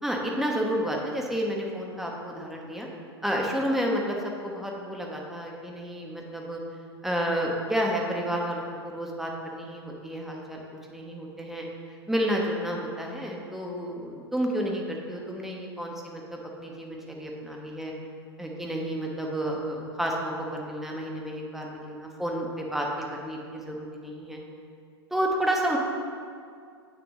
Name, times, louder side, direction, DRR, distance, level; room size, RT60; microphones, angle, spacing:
voice 1, 0.0-2.9 3.2-4.2 4.4-6.6 7.0-10.6 10.9-11.7 12.1-17.9 18.4-24.4 25.1-25.8, equal, ahead, -1 dB, 1.1 m, -30 dB
8.1 x 6.4 x 3.8 m, 2.2 s
figure-of-eight pair, 95°, 14 cm